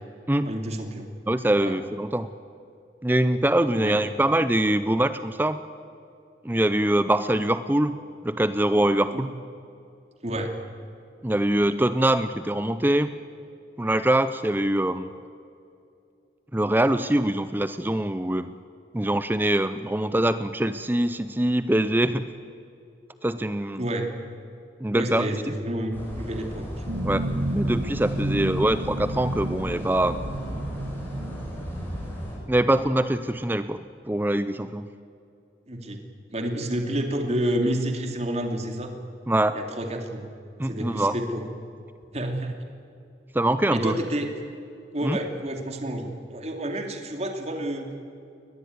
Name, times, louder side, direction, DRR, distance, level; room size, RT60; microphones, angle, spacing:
voice 1, 0.4-1.1 1.6-1.7 3.7-3.9 9.1-9.2 10.2-10.5 23.8-24.1 24.9-26.7 35.7-36.0 36.3-38.9 39.5-40.2 40.6-41.4 42.1-42.5 43.7-44.3 44.9-47.9, right 1 dB, 40° right, 4 dB, 2.6 m, -29 dB
voice 2, 1.3-2.3 3.0-5.6 6.4-9.3 11.2-13.2 13.8-15.1 16.5-18.5 18.9-22.3 23.2-23.8 24.8-25.3 27.0-30.2 32.5-34.9 39.3-39.6 40.6-41.1 43.3-43.9 45.0-45.2, right 1 dB, 10° right, 12 dB, 0.5 m, -23 dB
sound 1, 25.9-32.4, equal, 10° left, 6.2 m, -36 dB
sound 2, 26.9-32.1, right 1 dB, 90° right, 1.7 m, -31 dB
22.5 x 20.0 x 9.4 m, 2.5 s
head